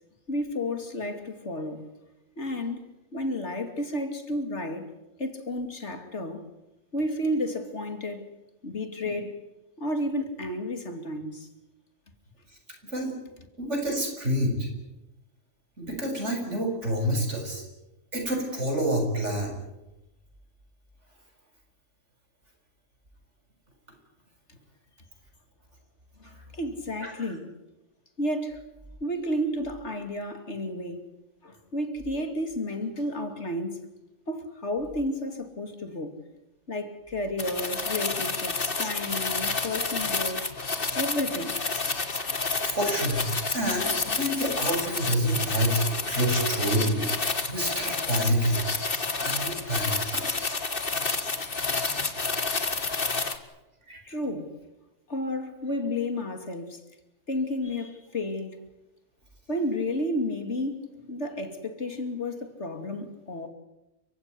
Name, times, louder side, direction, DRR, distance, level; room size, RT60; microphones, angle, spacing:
voice 1, 0.3-1.9 2.4-2.9 3.1-4.9 5.2-6.4 6.9-8.3 8.6-9.4 9.8-11.5 26.5-27.5 28.2-28.6 29.0-31.1 31.4-33.8 34.3-36.1 36.7-40.5 40.9-41.6 54.1-54.6 55.1-56.8 57.3-58.6 59.5-63.5, left 1 dB, 65° left, 3.0 m, -31 dB
voice 2, 13.6-14.7 15.8-17.6 18.1-19.6 27.0-27.2 42.6-47.1 47.5-48.7 49.2-50.2 52.5-52.6 53.9-54.0, right 1 dB, 65° right, 7.2 m, -28 dB
sound 1, 37.4-53.4, left 4 dB, 45° left, 2.0 m, -29 dB
30.0 x 16.5 x 9.8 m
omnidirectional pair, 1.3 m